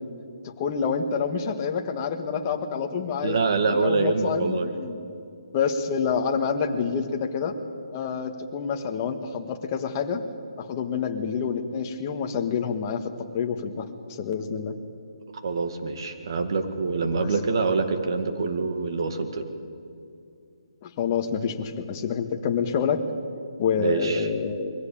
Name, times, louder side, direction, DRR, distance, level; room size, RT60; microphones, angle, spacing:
voice 1, 0.4-3.4 3.7-5.0 5.5-7.5 7.9-10.2 10.6-14.7 17.2-17.3 20.8-23.0 23.6-24.7, left 6 dB, 25° left, 5 dB, 1.5 m, -28 dB
voice 2, 3.2-4.7 15.4-19.5 23.8-24.3, right 4 dB, 50° right, 7 dB, 2.1 m, -25 dB
22.5 x 15.5 x 8.7 m, 2.5 s
hypercardioid pair, 165°, 3 cm